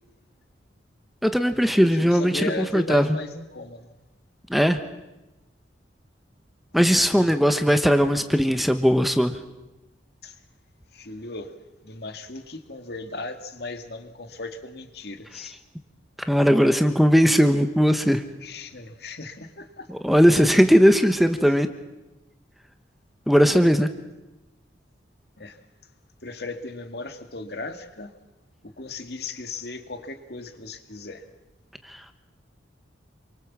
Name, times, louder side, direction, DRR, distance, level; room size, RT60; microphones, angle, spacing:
voice 1, 1.2-2.3 2.7-3.1 4.5-4.8 6.7-9.3 16.3-18.2 20.0-21.7 23.3-23.9 31.9-32.0, equal, ahead, 8 dB, 1.1 m, -18 dB
voice 2, 1.8-3.9 7.1-7.4 10.2-10.4 10.9-11.6 11.8-15.6 18.4-19.9 25.4-25.6 26.2-28.1 28.6-31.3, left 3 dB, 55° left, 8 dB, 2.1 m, -36 dB
28.0 x 24.0 x 7.4 m, 1.0 s
head